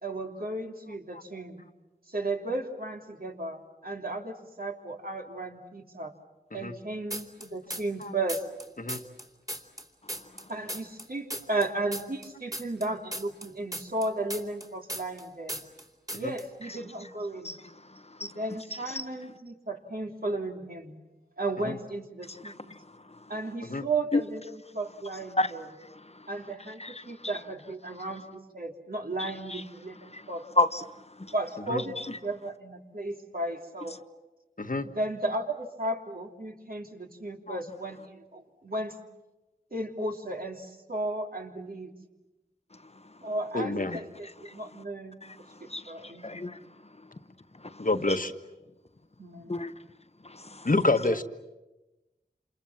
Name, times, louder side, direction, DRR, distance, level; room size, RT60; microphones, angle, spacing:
voice 1, 0.0-1.6 2.1-6.1 6.5-8.4 10.5-15.6 16.1-17.6 18.2-21.0 21.4-22.7 23.3-25.6 26.3-30.5 31.3-33.9 34.8-38.9 39.7-41.9 43.2-45.2 45.6-46.4 49.2-49.5, right 2 dB, 60° right, 3.0 m, -34 dB
sound 1, 7.1-8.0 8.3-11.1 11.3-15.2 15.5-15.8 16.1-16.4, equal, 20° right, 3.0 m, -37 dB
voice 2, 10.0-10.5 16.6-16.8 17.4-18.4 18.7-19.1 22.2-23.3 24.1-24.2 25.3-26.3 26.7-27.4 29.2-29.6 29.9-31.3 32.0-32.2 42.7-43.3 43.9-44.8 45.2-47.2 47.5-48.2 49.5-49.8 50.2-50.7, left 2 dB, 40° left, 1.0 m, -35 dB
voice 3, 34.6-34.9 37.5-37.6 43.5-44.0 47.8-48.3 50.6-51.2, left 2 dB, 55° left, 1.5 m, -27 dB
28.0 x 28.0 x 7.3 m
wide cardioid pair, 60°, 17 cm